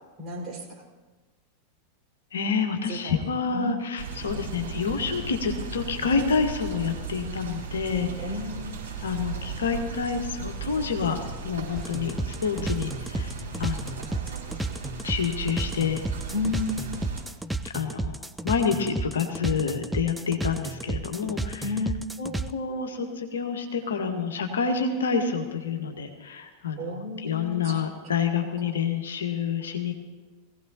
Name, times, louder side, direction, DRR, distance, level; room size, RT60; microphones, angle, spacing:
voice 1, 0.2-0.6 2.9-3.2 3.5-3.8 8.2-8.8 16.3-17.0 21.6-22.0 26.8-27.8, left 2 dB, 25° right, -3 dB, 4.8 m, -32 dB
voice 2, 2.3-8.4 9.0-13.3 13.6-13.9 15.0-16.0 17.6-18.1 18.4-21.8 22.2-29.9, left 6 dB, 65° left, 4 dB, 1.5 m, -28 dB
sound 1, 4.0-17.2, right 5 dB, 65° right, 4.9 m, -36 dB
sound 2, 11.8-22.5, right 2 dB, 5° right, 0.5 m, -32 dB
21.5 x 16.0 x 2.8 m, 1.3 s
figure-of-eight pair, 90°, 0 cm